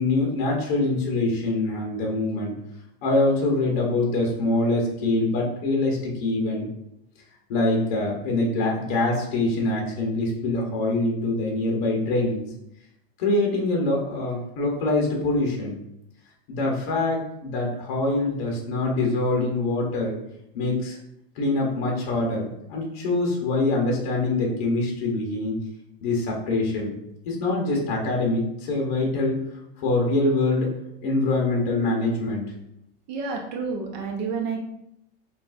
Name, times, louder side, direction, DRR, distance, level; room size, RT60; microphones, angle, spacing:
voice 1, 0.0-2.5 3.0-6.7 7.5-12.4 13.2-15.8 16.5-20.1 20.5-21.0 21.3-25.5 26.0-26.9 27.3-29.4 29.8-30.7 31.0-32.4, left 2 dB, 55° left, -1 dB, 1.0 m, -24 dB
voice 2, 33.1-34.6, right 5 dB, 50° right, 0 dB, 0.8 m, -29 dB
5.9 x 2.4 x 2.5 m, 0.80 s
supercardioid pair, 175°, 30 cm